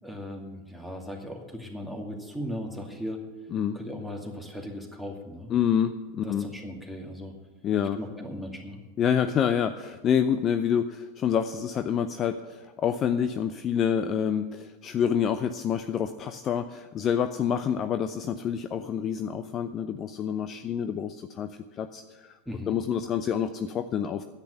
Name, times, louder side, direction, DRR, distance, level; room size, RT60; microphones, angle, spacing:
voice 1, 0.0-3.2 3.7-5.5 6.2-7.3 7.9-8.8 22.5-22.8, equal, 5° left, 2 dB, 2.3 m, -37 dB
voice 2, 5.5-6.4 7.6-8.0 9.0-21.5 21.8-22.4 22.7-24.2, left 8 dB, 35° left, 10 dB, 0.6 m, -27 dB
10.0 x 8.3 x 9.2 m, 1.3 s
hypercardioid pair, 90°, 0 cm